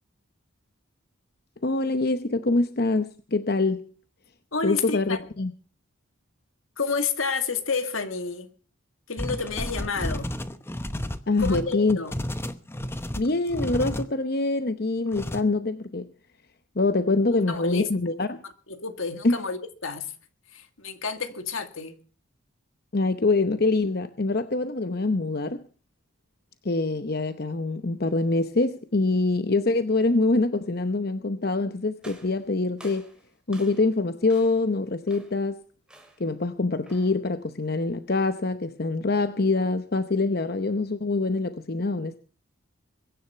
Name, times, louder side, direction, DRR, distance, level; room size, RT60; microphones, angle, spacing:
voice 1, 1.6-3.9 4.6-5.5 11.3-12.0 13.2-16.1 16.8-18.4 19.2-19.4 22.9-25.6 26.6-33.1 33.5-35.6 36.2-42.2, left 3 dB, 50° left, 0.8 m, -25 dB
voice 2, 4.5-5.2 6.8-8.5 9.1-10.3 11.4-12.1 17.3-17.9 18.4-20.1 20.5-21.9, left 4 dB, 75° left, 2.0 m, -30 dB
sound 1, 9.2-14.1 15.1-15.4, left 1 dB, 10° left, 0.8 m, -32 dB
sound 2, 32.0-34.0 34.3-34.7 35.1-35.5 35.9-36.3 36.8-37.2, right 1 dB, 5° right, 2.8 m, -51 dB
22.5 x 10.5 x 5.6 m
head